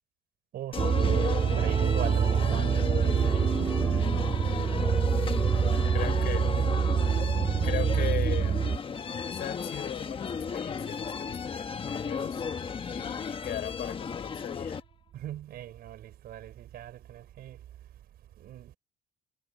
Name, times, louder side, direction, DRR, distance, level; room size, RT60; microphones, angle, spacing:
voice 1, 0.5-0.8 1.6-2.9 5.8-5.9 15.1-17.6 18.4-18.8, right 12 dB, 65° right, 4.3 m, -40 dB
sound 1, 0.7-14.8, left 6 dB, 30° left, 1.3 m, -35 dB
sound 2, 0.8-8.8, right 7 dB, 40° right, 1.4 m, -26 dB
sound 3, 3.1-7.7, left 2 dB, 10° left, 8.0 m, -38 dB
voice 2, 3.9-4.4 5.9-6.5 7.6-8.7 9.3-12.5 12.9-14.8, left 11 dB, 60° left, 4.9 m, -38 dB
cardioid pair, 110°, 17 cm